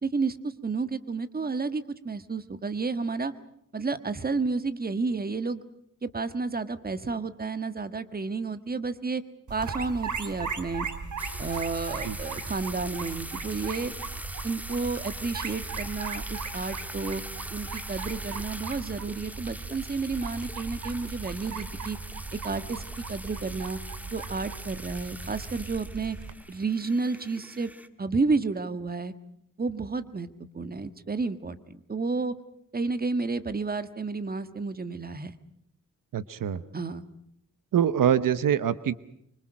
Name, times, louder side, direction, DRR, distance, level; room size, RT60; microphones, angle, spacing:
voice 1, 0.0-3.3 3.7-5.6 6.0-9.2 9.5-10.9 11.4-13.9 14.4-17.2 17.5-22.0 22.3-22.8 23.1-23.8 24.1-26.2 26.5-27.7 28.0-29.1 29.6-30.3 30.5-32.3 32.7-35.4 36.7-37.0, right 4 dB, 30° right, 11 dB, 1.6 m, -31 dB
sound 1, 9.5-26.3, right 5 dB, 65° right, 3.0 m, -38 dB
sound 2, 11.2-27.9, equal, 5° right, 1.5 m, -42 dB
voice 2, 36.1-36.6 37.7-38.9, right 9 dB, 85° right, 15 dB, 1.0 m, -24 dB
25.5 x 25.0 x 6.3 m, 0.74 s
wide cardioid pair, 100°, 32 cm